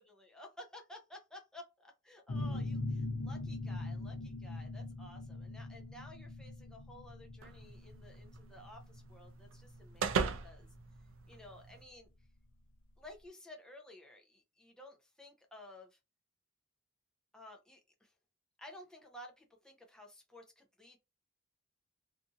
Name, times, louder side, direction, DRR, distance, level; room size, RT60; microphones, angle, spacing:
voice 1, 0.3-10.7 11.3-12.1 13.0-16.0 17.3-18.1 18.6-21.0, left 1 dB, 5° left, 0.6 m, -54 dB
sound 1, 2.3-11.7, left 2 dB, 65° left, 0.6 m, -41 dB
sound 2, 7.4-11.8, right 5 dB, 80° right, 0.4 m, -40 dB
2.7 x 2.5 x 2.4 m
head